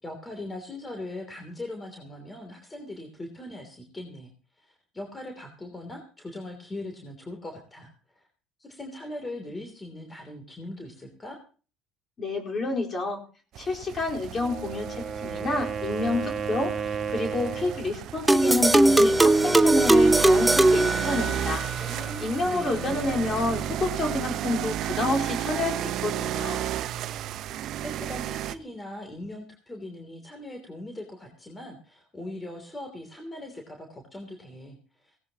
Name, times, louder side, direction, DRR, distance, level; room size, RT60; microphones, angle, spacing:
voice 1, 0.0-4.3 4.6-8.2 8.6-11.4 21.8-23.2 27.7-35.2, left 1 dB, 20° left, 3 dB, 3.0 m, -40 dB
voice 2, 12.2-13.2 13.6-21.6 22.2-26.6, left 2 dB, 35° left, 0 dB, 4.3 m, -29 dB
sound 1, 13.6-28.6, right 12 dB, 60° right, 0.8 m, -33 dB
Wind instrument woodwind instrument, 14.4-17.9, right 6 dB, 35° right, 1.6 m, -33 dB
sound 2, 18.3-21.7, right 2 dB, 10° right, 0.8 m, -19 dB
18.5 x 17.0 x 3.0 m, 0.38 s
supercardioid pair, 80°, 0 cm